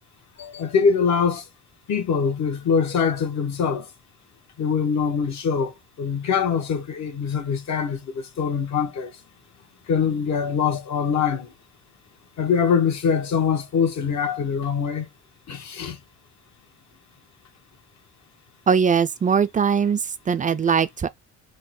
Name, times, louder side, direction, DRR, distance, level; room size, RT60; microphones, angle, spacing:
voice 1, 0.4-1.4 1.9-3.9 4.6-9.1 9.9-11.5 12.4-15.1 15.5-16.0, left 6 dB, 65° left, 1.2 m, -23 dB
voice 2, 18.7-21.1, right 6 dB, 25° right, 0.4 m, -21 dB
3.9 x 2.2 x 4.2 m
cardioid pair, 90°, 30 cm